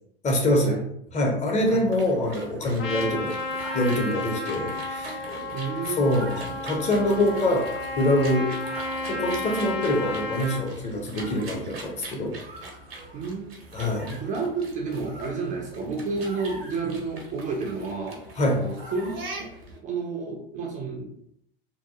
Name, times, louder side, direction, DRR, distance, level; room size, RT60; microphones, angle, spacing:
voice 1, 0.2-0.8 1.1-3.3 3.7-5.5 6.0-7.7 8.0-8.5 9.1-12.4 13.7-14.2 18.4-18.6, left 1 dB, 25° left, 1 dB, 0.6 m, -25 dB
sound 1, 1.6-19.8, right 2 dB, 80° right, 0.7 m, -42 dB
Trumpet, 2.8-10.6, left 2 dB, 70° left, 0.6 m, -32 dB
voice 2, 5.5-6.1 13.1-13.8 14.1-19.5 19.8-21.3, right 4 dB, 25° right, 0 dB, 0.4 m, -31 dB
2.7 x 2.2 x 2.3 m, 0.74 s
figure-of-eight pair, 80°, 30 cm